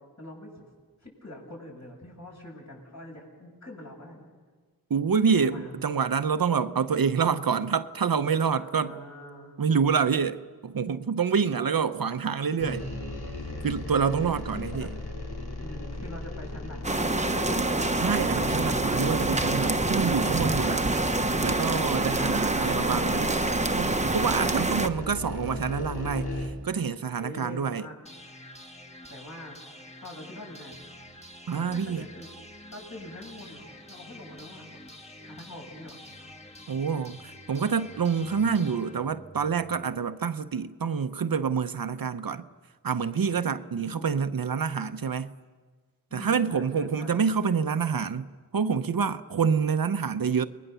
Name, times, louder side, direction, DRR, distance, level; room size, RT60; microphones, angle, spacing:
voice 1, 0.2-0.5 1.0-4.3 5.4-5.7 8.5-9.5 14.2-14.9 15.6-17.5 22.1-22.9 27.1-28.0 29.1-29.6 30.0-30.8 31.5-32.3 32.7-34.8 35.2-36.0 43.7-44.8 46.1-47.2, left 1 dB, 45° left, 7.7 m, -44 dB
voice 2, 4.9-8.9 9.6-12.8 13.6-14.9 18.0-20.9 21.4-23.3 23.8-27.9 31.5-32.0 36.7-42.5 42.8-45.3 46.1-50.5, right 6 dB, 65° right, 0.8 m, -27 dB
sound 1, 12.6-26.5, left 2 dB, 80° left, 3.8 m, -36 dB
sound 2, 16.8-24.9, right 2 dB, 20° right, 1.0 m, -26 dB
sound 3, 28.1-40.0, left 1 dB, 15° left, 1.9 m, -47 dB
29.5 x 21.0 x 6.9 m
wide cardioid pair, 90°, 38 cm